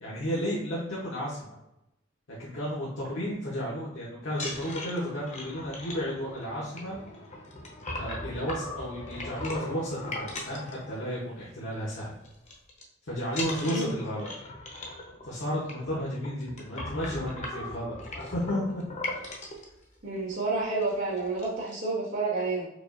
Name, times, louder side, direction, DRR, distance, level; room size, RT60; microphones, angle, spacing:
voice 1, 0.0-1.5 2.4-7.0 8.0-12.1 13.1-14.3 15.2-18.8, equal, 70° left, -7 dB, 0.9 m, -33 dB
sound 1, 4.3-11.4 11.7-12.0 12.2-12.8 13.3-19.6 20.3-20.4 20.7-20.9 21.2-21.7, left 2 dB, 35° left, 0.7 m, -38 dB
voice 2, 20.0-22.7, right 3 dB, 90° right, -12 dB, 1.4 m, -30 dB
4.9 x 2.4 x 2.5 m, 0.88 s
head